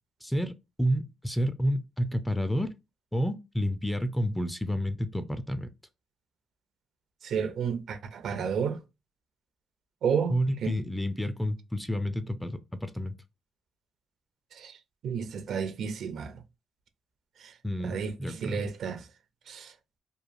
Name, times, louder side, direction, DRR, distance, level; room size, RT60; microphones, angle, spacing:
voice 1, 0.2-0.5 0.8-2.7 3.1-5.7 10.3-13.1 17.6-18.7, equal, 5° left, 0.3 m, -30 dB
voice 2, 7.2-8.8 10.0-10.4 10.6-10.8 14.6-14.7 15.0-16.4 17.4-17.5 17.8-18.1 18.4-19.0 19.5-19.7, right 7 dB, 65° right, 0.4 m, -31 dB
2.9 x 2.2 x 2.5 m
cardioid pair, 90°, 0 cm